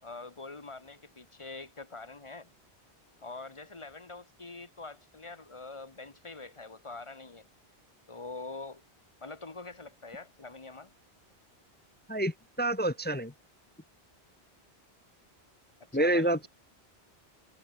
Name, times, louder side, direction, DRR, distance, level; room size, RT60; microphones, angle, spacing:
voice 1, 0.0-2.5 3.2-7.4 8.1-8.8 9.2-10.9 15.9-16.5, left 3 dB, 30° left, 1.6 m, -44 dB
voice 2, 12.1-13.3 15.9-16.5, right 1 dB, 15° left, 0.5 m, -28 dB
omnidirectional pair, 1.1 m